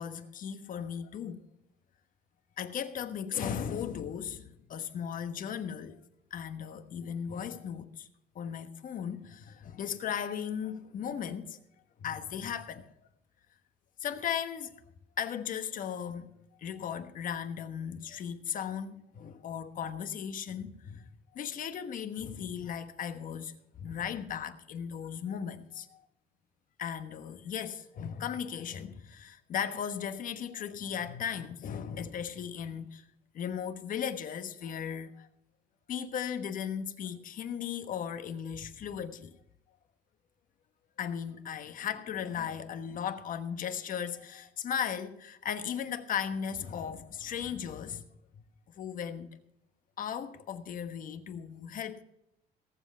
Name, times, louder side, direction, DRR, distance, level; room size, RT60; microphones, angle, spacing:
voice 1, 0.0-1.4 2.6-6.0 6.3-8.1 8.3-11.6 12.0-12.8 14.0-14.8 15.2-16.3 16.6-26.0 26.8-33.0 33.3-35.3 35.9-39.3 41.0-48.1 48.7-49.3 50.0-52.0, left 8 dB, 55° left, 1.2 m, -37 dB
18.5 x 7.4 x 5.5 m
cardioid pair, 110°, 17 cm